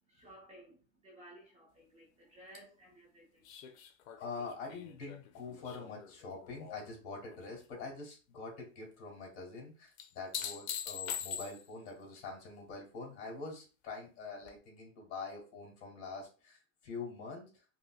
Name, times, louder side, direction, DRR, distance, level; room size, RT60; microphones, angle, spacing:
voice 1, 0.1-0.8 1.0-3.5, right 1 dB, 15° right, 0.6 m, -56 dB
sound 1, 3.5-6.9 7.3-7.9 10.0-11.9 14.5-14.6, left 8 dB, 80° left, 0.6 m, -43 dB
voice 2, 4.2-17.5, left 4 dB, 40° left, 1.8 m, -45 dB
5.1 x 2.1 x 2.2 m
supercardioid pair, 155°, 40 cm